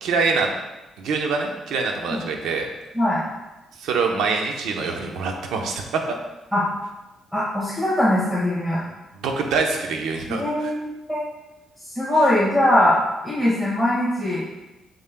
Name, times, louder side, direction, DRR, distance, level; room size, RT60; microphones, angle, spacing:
voice 1, 0.0-0.5 1.0-2.7 3.8-6.0 9.2-10.7, right 4 dB, 85° right, 3 dB, 0.9 m, -25 dB
voice 2, 7.3-8.8 10.4-11.2 11.9-14.4, left 1 dB, 10° right, -7 dB, 1.8 m, -21 dB
7.6 x 7.2 x 2.3 m, 1.0 s
cardioid pair, 90°, 0 cm